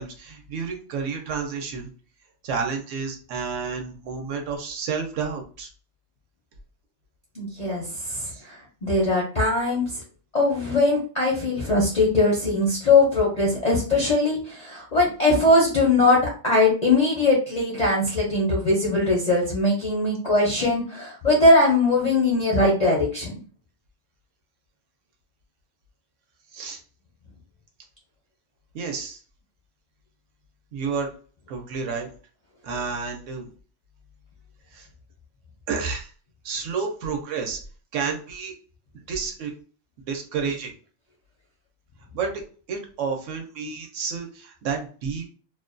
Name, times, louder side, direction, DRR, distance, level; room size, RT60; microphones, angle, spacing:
voice 1, 0.0-1.9 2.4-5.7 8.3-8.4 26.5-26.8 28.7-29.2 30.7-31.1 31.5-32.1 32.6-33.5 34.7-34.9 35.7-36.1 36.4-37.6 37.9-38.5 39.1-39.5 40.1-40.7 42.1-42.4 42.7-45.3, right 5 dB, 70° right, 3 dB, 0.9 m, -30 dB
voice 2, 7.4-9.8 10.3-23.4, left 2 dB, 50° left, -4 dB, 0.5 m, -21 dB
2.5 x 2.2 x 2.4 m, 0.40 s
omnidirectional pair, 1.4 m